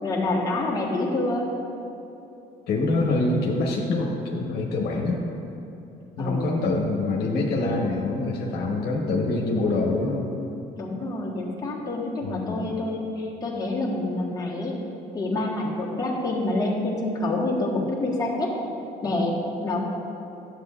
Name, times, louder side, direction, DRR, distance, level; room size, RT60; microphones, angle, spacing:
voice 1, 0.0-1.4 6.2-6.7 10.8-14.7 15.1-18.5 19.0-19.4 19.6-19.8, left 2 dB, 20° left, -5 dB, 1.4 m, -27 dB
voice 2, 2.7-5.2 6.2-10.3 12.2-12.7, left 2 dB, 70° left, -1 dB, 1.1 m, -25 dB
11.0 x 7.9 x 2.4 m, 2.8 s
cardioid pair, 110°, 17 cm